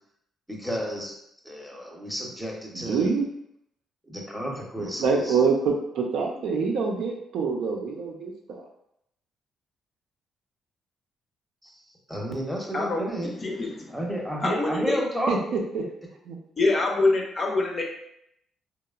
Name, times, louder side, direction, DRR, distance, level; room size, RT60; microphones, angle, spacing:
voice 1, 0.5-1.1 1.4-3.1 4.0-5.4 11.6-11.7 12.1-13.3 13.9-15.6, equal, ahead, -2 dB, 0.7 m, -31 dB
voice 2, 2.7-3.3 4.8-8.6 15.3-15.8 16.2-16.4, right 5 dB, 75° right, 1 dB, 0.5 m, -26 dB
voice 3, 12.7-14.0 14.4-15.0 16.6-17.8, left 2 dB, 40° left, 1 dB, 0.5 m, -25 dB
2.9 x 2.0 x 2.3 m, 0.75 s
cardioid pair, 90°, 0 cm